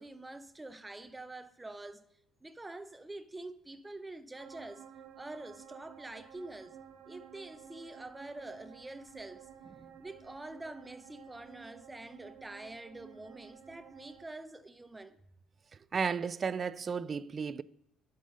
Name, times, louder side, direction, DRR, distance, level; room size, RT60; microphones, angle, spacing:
voice 1, 0.0-2.0 2.4-4.9 5.2-6.8 7.1-9.5 10.0-15.2, right 2 dB, 10° right, 0.7 m, -46 dB
sound 1, 4.4-14.3, right 8 dB, 65° right, 1.2 m, -53 dB
voice 2, 15.9-17.6, right 6 dB, 30° right, 0.3 m, -33 dB
9.9 x 5.5 x 6.3 m
cardioid pair, 120°, 0 cm